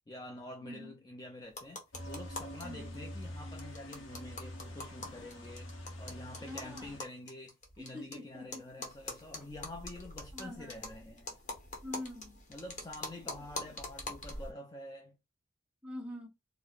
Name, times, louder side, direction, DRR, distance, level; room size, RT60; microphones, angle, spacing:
voice 1, 0.1-11.3 12.5-15.2, left 1 dB, 20° left, 0.3 m, -47 dB
voice 2, 0.6-0.9 2.6-3.0 6.4-7.0 7.8-8.9 9.4-9.5 10.3-10.9 11.8-12.5 15.8-16.3, left 1 dB, 5° right, 0.7 m, -45 dB
sound 1, 1.5-2.6 2.9-3.0 3.2-3.3 3.6-8.1 8.5-14.5, left 2 dB, 35° left, 0.9 m, -44 dB
sound 2, 1.9-7.0, equal, 75° left, 0.8 m, -46 dB
4.4 x 2.0 x 2.3 m
head